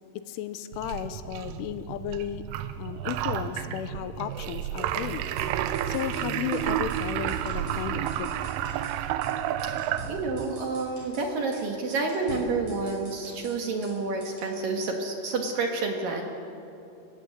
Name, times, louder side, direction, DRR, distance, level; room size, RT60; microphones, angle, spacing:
voice 1, 0.3-2.4 2.8-5.2 5.9-8.3, left 10 dB, 90° left, 11 dB, 3.3 m, -34 dB
sound 1, 0.7-10.5, right 11 dB, 90° right, 3.3 m, -31 dB
sound 2, 5.4-6.6 6.9-7.0 7.3-9.0 9.2-9.3 9.6-11.3 11.5-11.6 11.9-14.0 14.2-14.6, right 1 dB, 35° right, 6.5 m, -45 dB
voice 2, 9.6-16.2, right 3 dB, 60° right, 2 dB, 2.6 m, -29 dB
29.5 x 15.0 x 8.2 m, 2.8 s
omnidirectional pair, 5.6 m